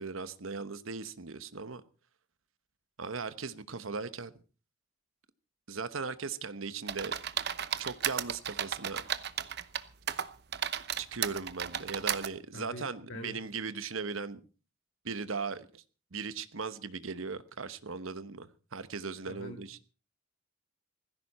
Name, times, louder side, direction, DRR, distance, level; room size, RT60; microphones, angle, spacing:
voice 1, 0.0-1.8 3.0-4.3 5.7-7.1 7.8-9.0 11.0-14.4 15.0-15.8 16.1-19.8, right 4 dB, 85° right, 1.1 m, -38 dB
sound 1, 6.9-9.8 10.1-12.3, right 9 dB, 55° right, 0.9 m, -34 dB
voice 2, 12.5-13.4 19.3-19.6, equal, 70° left, 2.1 m, -44 dB
17.5 x 15.5 x 4.2 m
head